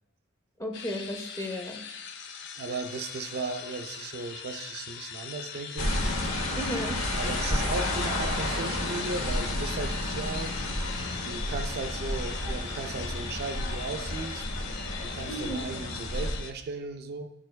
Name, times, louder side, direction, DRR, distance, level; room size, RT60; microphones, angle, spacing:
voice 1, 0.6-1.8 6.6-7.1 15.3-15.6, equal, 15° left, 4 dB, 0.6 m, -34 dB
sound 1, 0.7-16.5, left 7 dB, 55° left, 0.5 m, -41 dB
voice 2, 2.6-6.0 7.2-10.6 11.2-14.4 15.0-17.3, right 3 dB, 50° right, 8 dB, 0.4 m, -36 dB
sound 2, 5.8-16.4, left 1 dB, 80° left, 0.8 m, -31 dB
10.0 x 4.3 x 2.2 m, 0.82 s
head